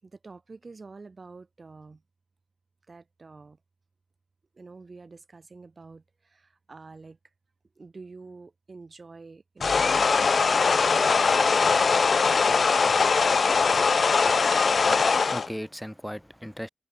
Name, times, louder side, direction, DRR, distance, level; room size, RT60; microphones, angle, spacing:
voice 1, 0.0-2.0 2.9-3.6 4.5-7.2 7.8-12.1 14.5-14.8, right 3 dB, 55° right, 6.5 m, -47 dB
sound 1, 9.6-15.5, left 5 dB, 75° left, 0.3 m, -21 dB
voice 2, 14.9-16.7, equal, 5° left, 2.9 m, -37 dB
open air
wide cardioid pair, 65°, 0 cm